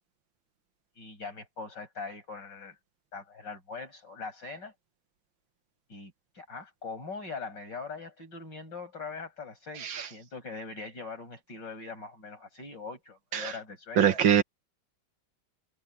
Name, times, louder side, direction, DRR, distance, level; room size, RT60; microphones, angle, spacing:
voice 1, 1.0-2.8 3.1-4.7 5.9-14.0, left 4 dB, 65° left, 8.1 m, -42 dB
voice 2, 14.0-14.4, right 9 dB, 80° right, 2.1 m, -23 dB
omnidirectional pair, 2.1 m